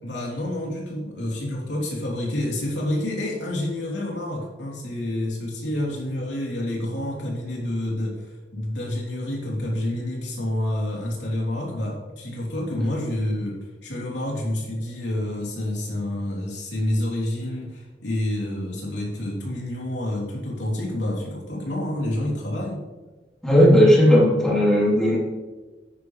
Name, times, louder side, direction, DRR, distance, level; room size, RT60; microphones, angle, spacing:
voice 1, 0.0-22.8, left 1 dB, 75° left, -3 dB, 3.3 m, -28 dB
voice 2, 23.4-25.2, equal, 5° left, -6 dB, 3.3 m, -16 dB
10.0 x 9.5 x 3.3 m, 1.2 s
head